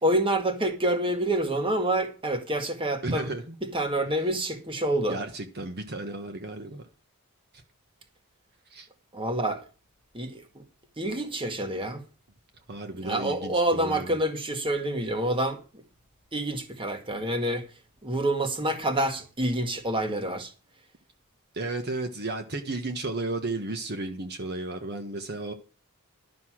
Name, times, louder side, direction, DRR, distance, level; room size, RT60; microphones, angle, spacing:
voice 1, 0.0-3.3 3.6-5.2 9.1-9.6 10.1-10.6 11.0-12.0 12.9-15.6 16.3-17.7 18.0-20.5, right 1 dB, 25° right, 1.8 m, -27 dB
voice 2, 3.0-3.6 4.2-4.3 5.1-6.8 8.7-8.9 12.7-14.2 21.5-25.5, right 2 dB, 50° right, 1.4 m, -33 dB
12.0 x 6.8 x 6.2 m
head